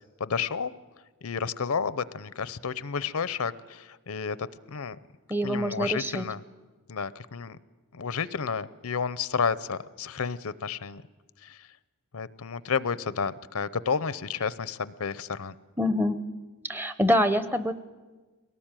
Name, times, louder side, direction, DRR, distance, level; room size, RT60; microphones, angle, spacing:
voice 1, 0.2-0.7 1.2-5.0 5.4-6.4 6.9-7.6 7.9-11.0 11.4-11.7 12.1-15.6, left 6 dB, 80° left, 17 dB, 0.7 m, -31 dB
voice 2, 5.3-6.3 15.8-16.2 16.6-17.7, equal, 10° right, 12 dB, 0.7 m, -25 dB
22.5 x 18.0 x 9.0 m, 1.3 s
head